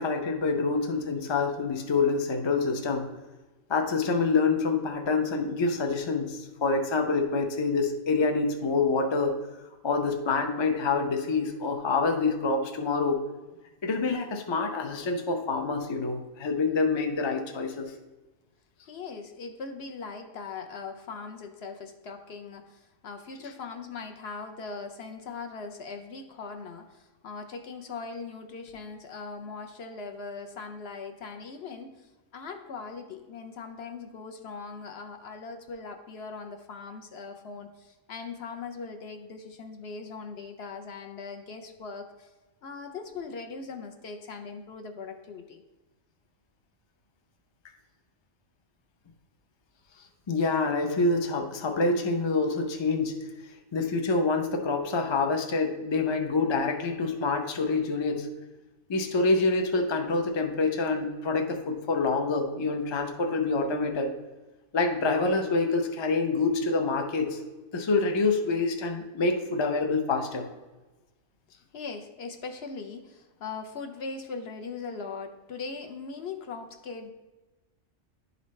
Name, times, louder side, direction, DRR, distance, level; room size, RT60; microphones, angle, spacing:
voice 1, 0.0-3.1 3.7-9.4 9.8-13.2 13.8-17.9 50.3-53.2 53.7-58.3 58.9-64.1 64.7-67.4 67.7-70.5, left 3 dB, 40° left, 4 dB, 0.4 m, -26 dB
voice 2, 18.9-42.3 42.6-45.6 71.7-77.1, left 4 dB, 60° left, 5 dB, 0.8 m, -40 dB
11.0 x 4.0 x 3.1 m, 1.2 s
omnidirectional pair, 1.3 m